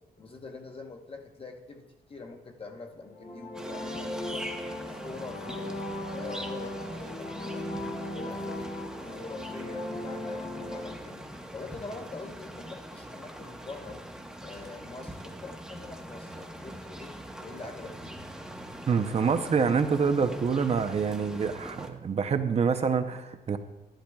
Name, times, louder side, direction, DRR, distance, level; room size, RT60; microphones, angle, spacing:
voice 1, 0.2-4.5 4.9-5.8 6.1-8.7 9.0-14.0 14.4-17.1 17.4-18.2, left 3 dB, 35° left, 3 dB, 0.9 m, -44 dB
sound 1, 3.0-10.9, left 1 dB, 70° left, 3.2 m, -37 dB
sound 2, 3.5-21.9, right 1 dB, 5° right, 0.9 m, -43 dB
voice 2, 18.9-23.6, right 6 dB, 40° right, 8 dB, 0.6 m, -26 dB
12.0 x 11.5 x 2.3 m, 1.0 s
wide cardioid pair, 140°, 17 cm